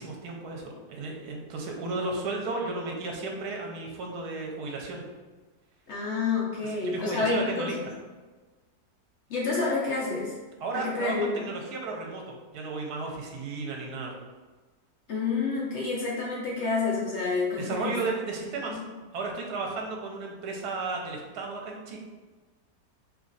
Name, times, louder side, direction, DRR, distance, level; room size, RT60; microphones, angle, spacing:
voice 1, 0.0-5.0 6.8-7.8 10.6-14.1 17.6-18.8 19.1-22.0, right 3 dB, 75° right, 0 dB, 1.2 m, -34 dB
voice 2, 5.9-7.7 9.3-10.4 10.7-11.5 15.1-18.1 18.7-18.8, left 4 dB, 55° left, -5 dB, 0.8 m, -29 dB
3.1 x 2.4 x 3.9 m, 1.3 s
omnidirectional pair, 1.7 m